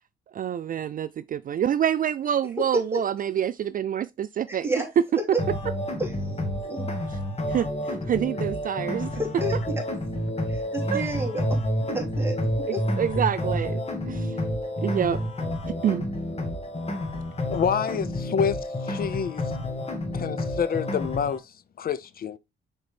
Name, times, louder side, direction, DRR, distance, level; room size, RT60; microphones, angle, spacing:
voice 1, 0.3-4.7 7.1-7.2 7.5-7.7 8.1-9.1 10.9-11.1 13.0-13.8 14.1-14.4 14.8-15.2 15.7-16.1, right 9 dB, 45° right, 0.4 m, -27 dB
voice 2, 4.5-4.9 5.3-5.4 6.0-6.1 6.6-7.0 9.1-9.8 10.5-11.6 11.9-12.4 12.7-12.8, right 1 dB, 10° right, 2.9 m, -30 dB
sound 1, 5.4-21.4, left 1 dB, 30° left, 1.8 m, -29 dB
voice 3, 17.4-18.6 18.8-19.4 20.1-22.4, left 7 dB, 50° left, 0.7 m, -28 dB
6.5 x 4.3 x 3.4 m
cardioid pair, 90°, 20 cm